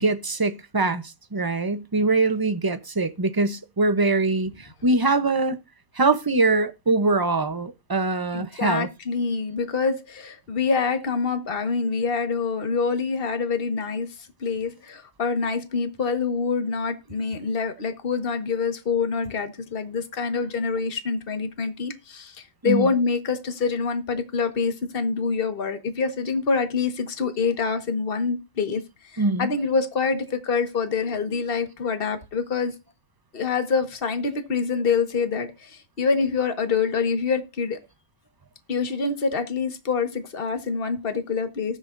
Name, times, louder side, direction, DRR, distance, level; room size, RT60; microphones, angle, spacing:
voice 1, 0.0-5.6 6.0-8.9 22.6-22.9 29.2-29.5, right 3 dB, 25° right, 0.5 m, -23 dB
voice 2, 8.3-14.1 14.4-32.7 33.3-37.8 38.7-41.8, left 5 dB, 35° left, 1.7 m, -26 dB
19.5 x 7.0 x 2.6 m
omnidirectional pair, 1.7 m